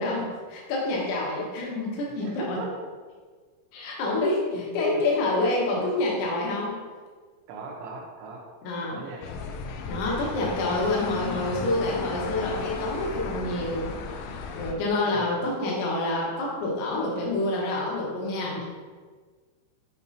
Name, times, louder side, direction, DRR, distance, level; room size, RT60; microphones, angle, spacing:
voice 1, 0.0-2.6 3.7-6.8 8.6-9.0 9.9-13.9 14.5-18.6, left 2 dB, 75° left, -4 dB, 3.6 m, -27 dB
voice 2, 2.2-2.7 4.5-5.0 7.5-8.4 8.9-9.2 15.1-15.4 18.5-18.7, right 3 dB, 80° right, -1 dB, 3.2 m, -39 dB
sound 1, 9.2-14.7, left 5 dB, 90° left, 3.2 m, -35 dB
9.7 x 4.7 x 2.8 m, 1.5 s
omnidirectional pair, 5.6 m